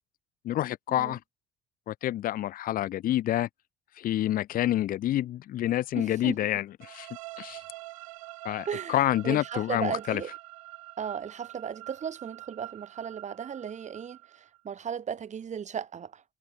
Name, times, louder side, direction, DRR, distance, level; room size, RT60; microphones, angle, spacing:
voice 1, 0.4-1.2 1.9-3.5 4.0-7.1 7.4-7.6 8.4-10.2, left 13 dB, 55° left, 0.9 m, -28 dB
voice 2, 5.9-6.6 8.7-10.3 11.0-16.2, right 7 dB, 45° right, 2.7 m, -36 dB
sound 1, 6.8-14.6, right 20 dB, 85° right, 2.0 m, -46 dB
hypercardioid pair, 60°, 17 cm